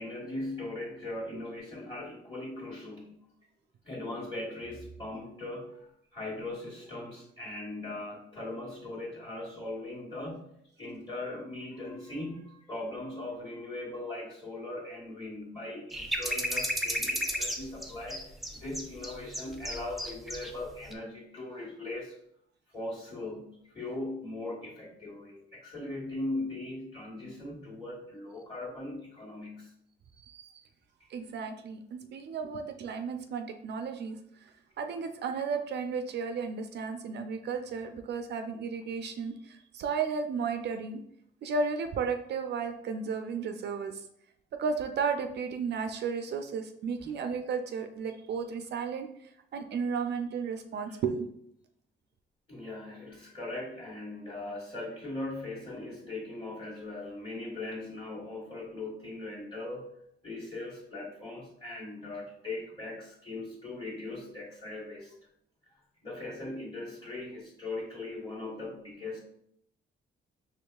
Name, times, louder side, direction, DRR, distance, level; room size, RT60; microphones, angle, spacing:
voice 1, 0.0-3.2 3.8-10.5 10.8-22.2 22.7-29.7 47.0-47.1 50.8-51.0 52.5-59.9 60.2-65.1 66.0-69.2, left 2 dB, 25° left, -8 dB, 1.2 m, -39 dB
sound 1, 15.9-20.5 20.8-20.9, equal, ahead, 0.5 m, -33 dB
voice 2, 30.2-30.6 31.1-34.2 34.8-41.0 41.4-44.0 44.6-49.1 49.5-51.3, right 5 dB, 60° right, 7 dB, 0.4 m, -34 dB
4.6 x 3.1 x 2.3 m, 0.72 s
cardioid pair, 90°, 20 cm